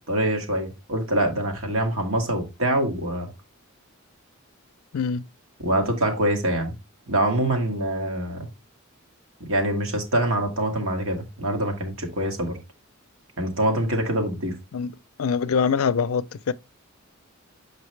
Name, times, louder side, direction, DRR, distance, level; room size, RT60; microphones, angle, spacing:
voice 1, 0.1-3.3 5.6-6.7 7.1-8.5 9.5-12.6 13.4-14.6, right 1 dB, 80° right, 1.7 m, -24 dB
voice 2, 4.9-5.2 14.7-14.9 15.2-16.5, left 6 dB, 80° left, 0.4 m, -24 dB
6.5 x 5.2 x 3.1 m
head